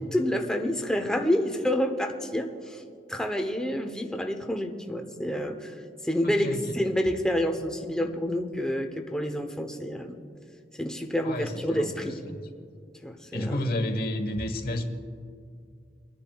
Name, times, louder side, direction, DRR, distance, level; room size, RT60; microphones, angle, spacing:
voice 1, 0.1-2.8 3.1-10.2 10.7-12.2 13.0-13.6, equal, 5° left, 4 dB, 0.7 m, -28 dB
voice 2, 6.2-6.7 11.2-12.4 13.3-14.8, left 1 dB, 55° left, 6 dB, 1.1 m, -31 dB
29.5 x 10.5 x 2.3 m, 2.3 s
head